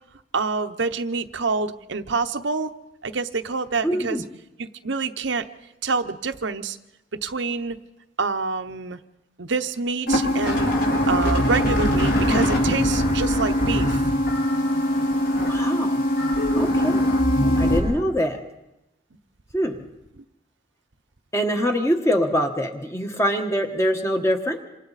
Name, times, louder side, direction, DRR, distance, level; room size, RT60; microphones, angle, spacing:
voice 1, 0.3-2.7 3.0-4.2 4.6-5.4 5.8-6.8 7.2-7.8 8.2-9.0 9.4-10.7 11.1-14.0 20.2-20.3, right 4 dB, 70° right, 8 dB, 0.8 m, -27 dB
voice 2, 3.8-4.2 15.4-16.0 16.6-17.0 17.6-18.4 19.5-19.8 21.3-24.6, equal, 15° left, 4 dB, 1.3 m, -24 dB
sound 1, 10.1-17.8, equal, 60° left, 5.9 m, -21 dB
27.0 x 26.5 x 4.1 m, 0.91 s
head